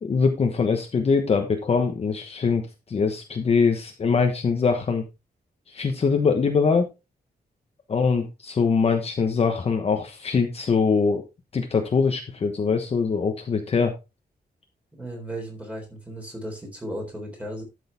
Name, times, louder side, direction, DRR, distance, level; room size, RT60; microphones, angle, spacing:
voice 1, 0.0-5.1 5.7-6.9 7.9-11.3 11.5-14.0, left 5 dB, 35° left, 5 dB, 1.1 m, -23 dB
voice 2, 15.0-17.6, right 1 dB, 10° right, 1 dB, 3.9 m, -35 dB
12.5 x 6.4 x 3.4 m, 0.25 s
wide cardioid pair, 180°, 17 cm